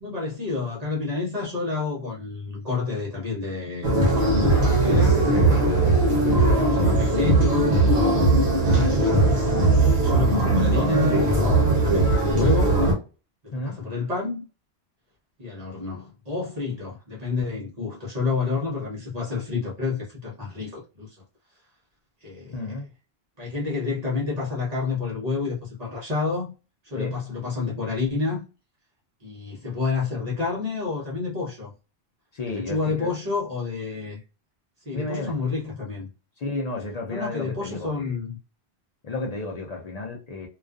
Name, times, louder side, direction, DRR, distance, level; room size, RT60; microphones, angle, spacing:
voice 1, 0.0-5.3 6.6-9.5 9.8-12.8 13.4-14.4 15.4-21.2 22.2-22.8 23.4-26.5 26.8-28.4 29.2-31.7 32.5-34.2 34.9-36.1 37.1-38.4, left 4 dB, 40° right, 0.8 m, -29 dB
sound 1, 3.8-12.9, right 2 dB, 65° right, 1.0 m, -19 dB
voice 2, 22.5-22.8 26.9-27.2 32.3-33.1 34.9-35.3 36.4-38.1 39.0-40.5, left 2 dB, 55° left, 0.5 m, -32 dB
2.4 x 2.3 x 2.3 m
omnidirectional pair, 1.1 m